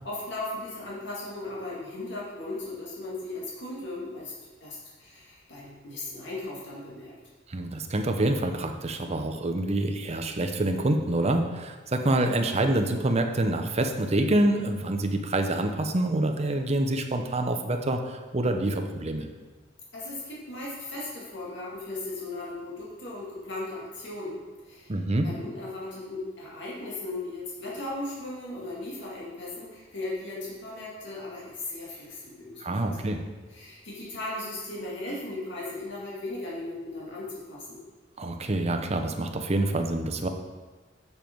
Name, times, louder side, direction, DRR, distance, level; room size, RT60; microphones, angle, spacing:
voice 1, 0.0-4.3 4.6-7.1 19.9-25.0 25.2-33.1 33.5-37.8, left 2 dB, 70° left, -6 dB, 2.2 m, -37 dB
voice 2, 7.5-19.3 24.9-25.3 32.6-33.2 38.2-40.3, right 1 dB, 35° right, 5 dB, 0.7 m, -26 dB
7.2 x 6.8 x 4.5 m, 1.3 s
head